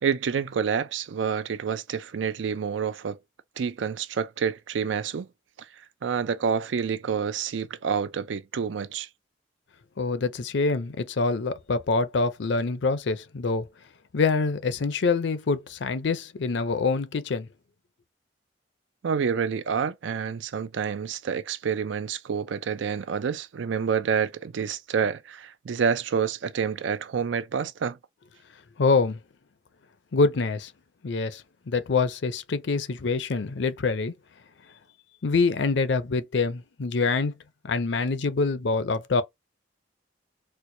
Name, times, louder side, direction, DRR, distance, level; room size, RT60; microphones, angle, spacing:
voice 1, 0.0-3.2 3.6-5.3 6.0-9.1 19.0-28.0, right 6 dB, 75° right, 0.4 m, -28 dB
voice 2, 10.0-13.7 14.1-17.5 28.8-29.2 30.1-30.7 31.0-34.1 35.2-37.3 37.6-39.2, left 4 dB, 65° left, 0.5 m, -25 dB
4.4 x 2.1 x 2.6 m
head